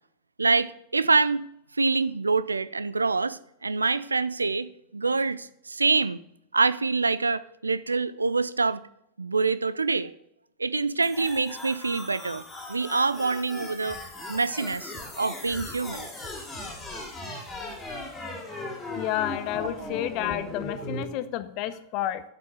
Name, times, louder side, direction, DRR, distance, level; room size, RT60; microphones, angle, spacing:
voice 1, 0.4-1.5 1.8-6.2 6.5-8.8 9.2-10.1 10.6-12.4 12.7-14.0 14.3-16.1 19.6-19.7, right 4 dB, 80° right, 0.4 m, -25 dB
sound 1, 11.0-21.0, left 2 dB, 15° left, 2.6 m, -38 dB
voice 2, 19.0-22.2, left 12 dB, 40° left, 0.8 m, -30 dB
7.7 x 5.7 x 7.2 m
figure-of-eight pair, 90°, 0 cm